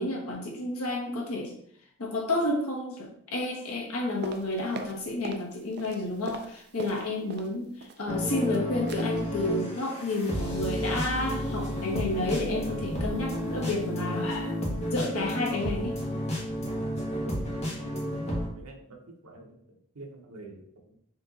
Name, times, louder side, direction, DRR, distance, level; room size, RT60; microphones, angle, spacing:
voice 1, 0.0-1.5 2.0-16.0, left 2 dB, 70° left, -1 dB, 1.2 m, -31 dB
sound 1, 4.2-5.5 5.7-7.5 7.8-8.6 8.9-9.1 9.4-9.6 9.9-10.2 10.4-10.5, right 3 dB, 50° right, 0.4 m, -41 dB
sound 2, 8.1-18.5, equal, 30° left, 1.3 m, -32 dB
voice 2, 17.7-18.3 18.6-21.0, right 2 dB, 85° right, 1 dB, 1.0 m, -47 dB
4.4 x 2.9 x 3.8 m, 0.68 s
head